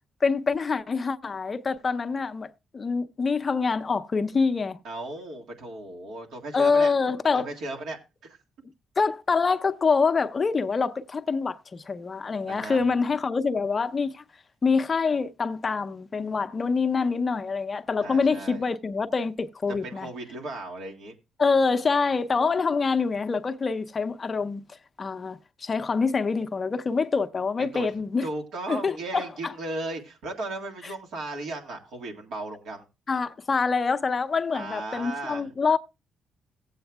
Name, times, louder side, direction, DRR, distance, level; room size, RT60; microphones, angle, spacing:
voice 1, 0.2-4.8 6.5-7.5 9.0-14.2 14.6-20.1 21.4-24.6 25.0-28.3 28.7-29.5 33.1-35.8, left 4 dB, 35° left, 0.6 m, -25 dB
voice 2, 4.8-6.9 7.3-8.4 12.5-12.9 18.0-18.6 19.8-21.1 27.6-27.9 28.2-32.8 34.5-35.5, right 2 dB, 80° right, 1.8 m, -36 dB
17.0 x 7.9 x 2.3 m
cardioid pair, 90°, 0 cm